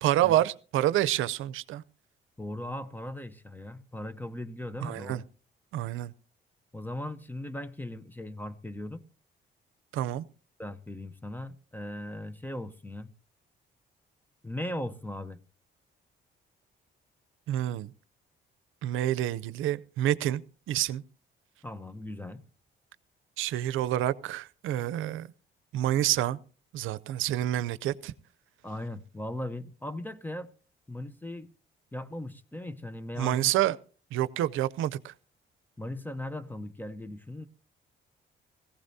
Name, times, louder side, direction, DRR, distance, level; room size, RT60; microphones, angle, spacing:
voice 1, 0.0-1.8 4.8-5.2 5.7-6.1 9.9-10.2 17.5-17.9 18.8-20.4 20.7-21.0 23.4-25.3 25.7-26.4 26.7-28.1 33.2-33.8 34.1-35.1, right 13 dB, 85° right, 0.6 m, -28 dB
voice 2, 2.4-5.2 6.7-9.0 10.6-13.1 14.4-15.4 21.6-22.4 28.6-30.5 30.9-31.5 31.9-33.5 35.8-37.5, left 1 dB, 10° left, 0.8 m, -38 dB
17.5 x 15.5 x 2.7 m
cardioid pair, 90°, 20 cm